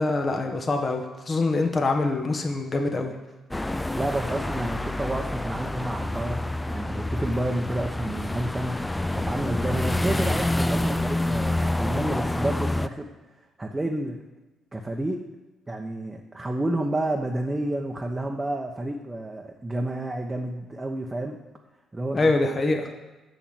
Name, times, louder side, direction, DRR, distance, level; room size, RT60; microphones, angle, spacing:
voice 1, 0.0-3.1 22.1-22.9, left 2 dB, 40° left, 4 dB, 1.7 m, -24 dB
sound 1, 3.5-12.9, left 1 dB, 10° left, 0.5 m, -27 dB
voice 2, 3.9-8.8 9.1-13.1 13.6-14.2 14.7-15.2 15.7-21.4 21.9-22.5, right 1 dB, 20° right, 1 dB, 1.1 m, -30 dB
7.0 x 6.5 x 7.8 m, 1.1 s
hypercardioid pair, 50°, 0 cm